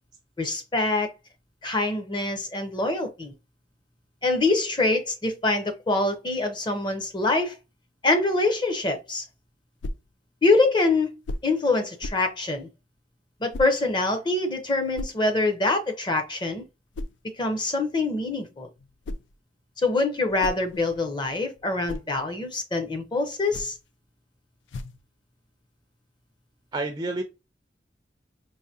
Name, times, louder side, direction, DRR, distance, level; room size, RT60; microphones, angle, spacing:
voice 1, 0.4-1.1 1.6-3.3 4.2-7.5 8.0-9.2 10.4-11.1 11.4-12.7 13.4-16.6 17.4-18.7 19.8-23.7, left 2 dB, 25° left, 0.7 m, -24 dB
sound 1, 9.8-10.1 11.2-11.6 12.0-12.3 13.5-13.8 14.9-15.2 16.9-17.2 18.8-19.4 20.1-21.1 21.6-22.1 23.4-23.9 24.7-25.1, left 1 dB, 90° left, 0.4 m, -36 dB
voice 2, 26.7-27.2, right 2 dB, 20° right, 0.4 m, -29 dB
4.7 x 2.6 x 2.7 m
head